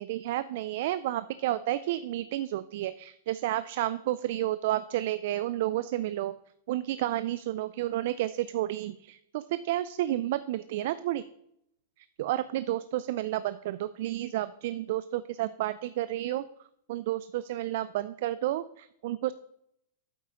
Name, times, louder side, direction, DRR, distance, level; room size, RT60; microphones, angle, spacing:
voice 1, 0.0-6.3 6.7-11.2 12.0-16.4 16.9-19.3, right 14 dB, 60° right, 15 dB, 0.3 m, -31 dB
8.4 x 8.1 x 3.7 m, 0.76 s
hypercardioid pair, 120°, 0 cm